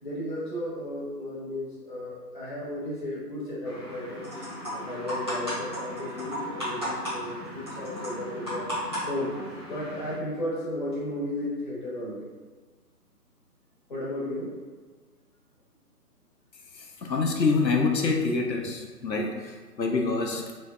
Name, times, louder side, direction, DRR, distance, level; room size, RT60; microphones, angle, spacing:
voice 1, 0.0-8.7 9.1-9.4 9.6-12.3 13.9-14.5, left 1 dB, 30° left, -8 dB, 0.9 m, -34 dB
sound 1, 3.6-10.1, equal, 15° right, 0.8 m, -35 dB
voice 2, 17.0-20.4, left 4 dB, 85° left, 2 dB, 0.7 m, -26 dB
3.3 x 3.1 x 2.2 m, 1.4 s
figure-of-eight pair, 145°, 50 cm